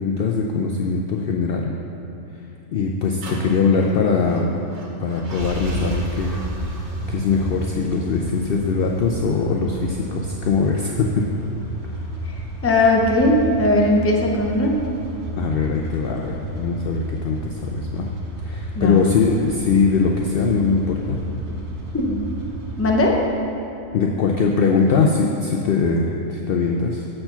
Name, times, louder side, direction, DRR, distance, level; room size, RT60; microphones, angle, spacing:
voice 1, 0.0-1.7 2.7-4.5 5.0-6.4 7.1-11.2 15.4-18.1 18.4-21.2 23.9-27.1, left 4 dB, 80° left, 1 dB, 0.5 m, -21 dB
sound 1, 3.2-23.1, right 1 dB, 55° right, 1.2 m, -32 dB
voice 2, 12.6-14.8 18.8-19.0 21.9-22.2 22.8-23.2, left 1 dB, 15° left, -1 dB, 0.4 m, -18 dB
7.6 x 4.5 x 5.7 m, 2.9 s
omnidirectional pair, 1.5 m